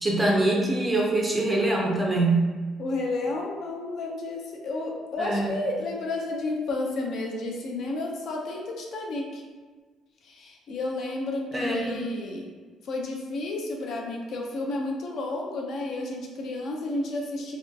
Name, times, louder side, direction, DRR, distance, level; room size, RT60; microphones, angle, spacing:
voice 1, 0.0-2.4 5.2-5.6 11.5-12.0, right 2 dB, 10° right, -2 dB, 0.4 m, -24 dB
voice 2, 2.8-9.4 10.2-12.5 12.8-17.6, left 2 dB, 55° left, 0 dB, 0.3 m, -31 dB
2.6 x 2.2 x 2.3 m, 1.4 s
cardioid pair, 150°, 0 cm